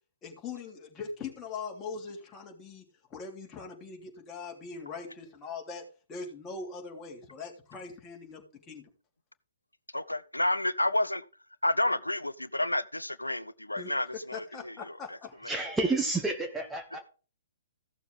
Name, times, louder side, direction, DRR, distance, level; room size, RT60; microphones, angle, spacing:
voice 1, 0.2-2.8 3.1-5.8 6.1-8.4 8.7-8.8 13.8-13.9 14.3-15.3, left 4 dB, 15° left, 3.2 m, -41 dB
voice 2, 9.9-11.2 11.6-15.2, left 1 dB, 85° left, 0.5 m, -30 dB
voice 3, 15.5-17.0, right 3 dB, 5° right, 1.2 m, -30 dB
15.5 x 6.9 x 3.6 m
figure-of-eight pair, 120°, 0 cm